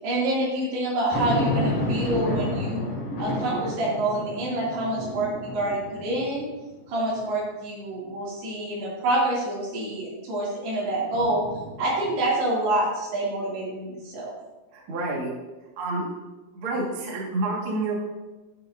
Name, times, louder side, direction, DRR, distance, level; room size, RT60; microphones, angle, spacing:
voice 1, 0.0-2.8 3.2-6.5 6.9-11.5 11.8-14.3, right 1 dB, 85° right, -5 dB, 4.5 m, -27 dB
sound 1, 1.1-6.6 7.2-7.3 11.1-12.2, left 1 dB, 45° left, 3.8 m, -30 dB
voice 2, 14.7-15.3 15.8-16.0 16.5-18.0, right 2 dB, 45° right, -3 dB, 1.8 m, -28 dB
12.5 x 6.8 x 2.6 m, 1.1 s
omnidirectional pair, 4.6 m